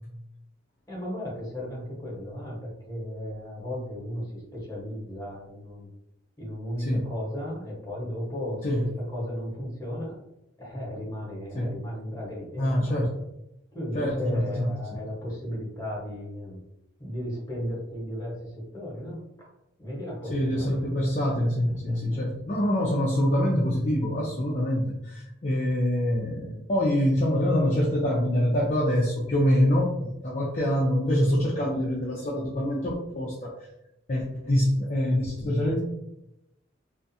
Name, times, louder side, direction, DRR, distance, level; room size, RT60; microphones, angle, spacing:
voice 1, 0.9-5.9 6.4-10.2 10.6-13.0 13.7-16.6 17.0-19.5 19.8-20.9 21.7-22.2, equal, 15° left, -4 dB, 1.0 m, -35 dB
voice 2, 6.8-7.1 8.6-8.9 11.5-11.8 12.6-13.1 13.9-15.0 20.3-33.7 34.1-35.8, equal, 35° left, -4 dB, 0.4 m, -25 dB
2.4 x 2.3 x 2.6 m, 0.86 s
head